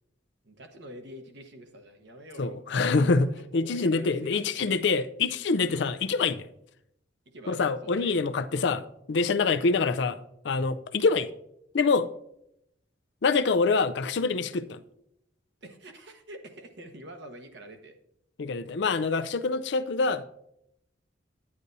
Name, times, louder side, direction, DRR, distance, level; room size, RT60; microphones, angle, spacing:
voice 1, 0.4-4.8 5.5-5.8 7.3-7.6 7.9-8.2 15.6-18.0 20.0-20.2, right 1 dB, 65° right, 1.1 m, -46 dB
voice 2, 2.4-6.5 7.5-11.3 11.7-12.1 13.2-14.8 18.4-20.2, left 4 dB, 65° left, 0.5 m, -25 dB
9.9 x 9.6 x 2.7 m
head